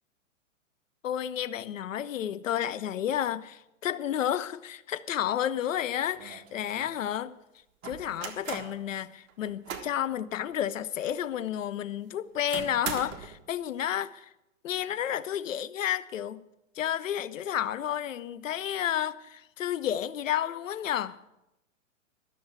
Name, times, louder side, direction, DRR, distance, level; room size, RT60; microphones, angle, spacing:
voice 1, 1.0-7.3 7.8-14.3 14.6-16.4 16.7-21.2, left 10 dB, 75° left, 0.8 m, -31 dB
sound 1, 5.7-5.8 6.1-6.9 7.8-8.8 9.3-10.0 10.5-10.6 11.0-11.1 12.5-13.4, right 7 dB, 30° right, 1.5 m, -39 dB
12.5 x 6.9 x 8.4 m
hypercardioid pair, 120°, 39 cm